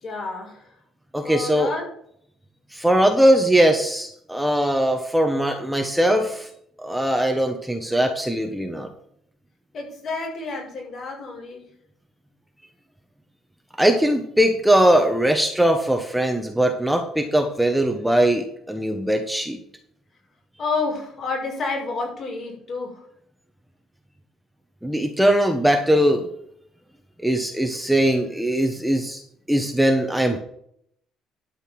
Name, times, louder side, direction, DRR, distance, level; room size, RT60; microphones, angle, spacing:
voice 1, 0.0-0.6 1.2-1.9 9.7-11.6 20.6-22.9, left 3 dB, 50° left, -1 dB, 5.6 m, -29 dB
voice 2, 1.1-1.7 2.7-6.5 6.8-8.9 13.8-19.6 24.8-26.3 27.2-29.2 29.5-30.4, right 1 dB, 5° right, 4 dB, 1.3 m, -20 dB
12.0 x 5.7 x 6.1 m, 0.69 s
cardioid pair, 115°, 0 cm